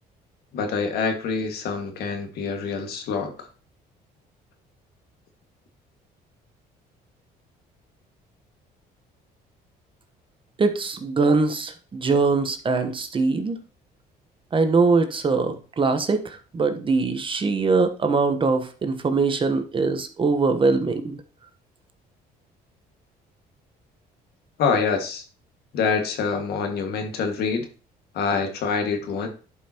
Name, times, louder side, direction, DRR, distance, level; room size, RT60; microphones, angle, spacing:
voice 1, 0.5-3.3 24.6-25.2 25.7-27.7 28.1-29.3, left 5 dB, 70° left, 4 dB, 1.9 m, -25 dB
voice 2, 10.6-13.6 14.5-21.2, right 4 dB, 30° right, 8 dB, 1.1 m, -22 dB
11.0 x 5.5 x 3.0 m, 0.36 s
cardioid pair, 110°, 17 cm